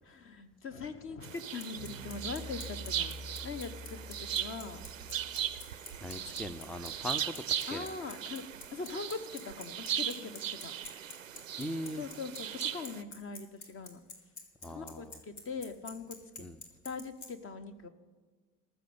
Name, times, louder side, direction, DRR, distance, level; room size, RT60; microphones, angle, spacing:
voice 1, 0.1-3.1 3.4-4.8 6.0-6.2 7.7-8.4 8.7-10.7 12.0-14.0 14.7-16.4 16.8-17.9, left 4 dB, 35° left, 11 dB, 1.1 m, -42 dB
sound 1, 1.2-13.0, right 9 dB, 85° right, 0.5 m, -38 dB
Bicycle, 1.4-17.3, left 3 dB, 50° left, 2.3 m, -46 dB
sound 2, 1.8-7.1, equal, 75° left, 1.7 m, -48 dB
voice 2, 6.0-7.9 11.6-12.0 14.6-15.2 16.4-16.6, left 1 dB, ahead, 14 dB, 0.4 m, -40 dB
14.5 x 6.5 x 8.6 m, 1.4 s
figure-of-eight pair, 65°, 38 cm